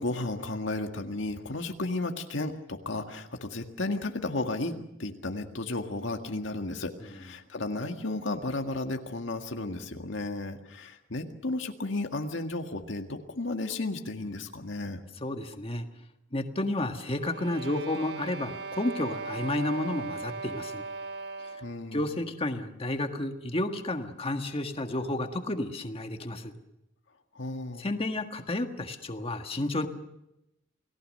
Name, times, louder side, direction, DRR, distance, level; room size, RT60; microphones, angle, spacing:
voice 1, 0.0-15.0 21.6-22.0 27.4-27.9, left 2 dB, 70° left, 4 dB, 1.9 m, -33 dB
voice 2, 15.2-15.8 16.3-20.8 21.9-26.5 27.8-29.9, left 1 dB, 30° left, 6 dB, 1.7 m, -31 dB
sound 1, 17.1-21.8, right 4 dB, 55° right, 1.3 m, -38 dB
29.0 x 19.0 x 6.6 m, 0.88 s
head